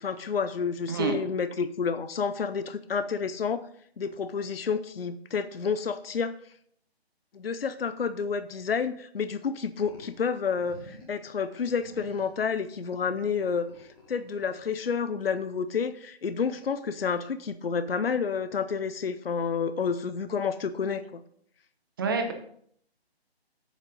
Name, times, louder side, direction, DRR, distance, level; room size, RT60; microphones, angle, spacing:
voice 1, 0.0-3.6 4.0-6.3 7.3-21.2, left 6 dB, 65° left, 12 dB, 0.7 m, -30 dB
sound 1, 9.8-10.2 10.5-11.2 11.8-12.4 13.0-15.1, left 1 dB, 20° left, 1.8 m, -50 dB
voice 2, 22.0-22.3, right 4 dB, 20° right, 5 dB, 0.8 m, -27 dB
7.5 x 6.7 x 5.3 m, 0.66 s
figure-of-eight pair, 150°, 32 cm